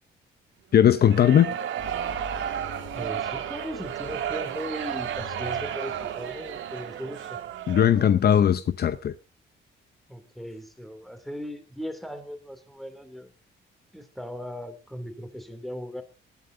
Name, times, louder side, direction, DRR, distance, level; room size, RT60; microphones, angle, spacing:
voice 1, 0.7-1.5 7.7-9.1, left 9 dB, 55° left, 0.7 m, -19 dB
sound 1, 0.9-8.2, right 10 dB, 80° right, 2.0 m, -33 dB
sound 2, 1.8-8.1, left 7 dB, 85° left, 2.3 m, -46 dB
voice 2, 2.9-7.4 10.1-13.3 13.9-16.0, equal, ahead, 2.9 m, -38 dB
19.0 x 11.5 x 3.8 m
cardioid pair, 90°, 20 cm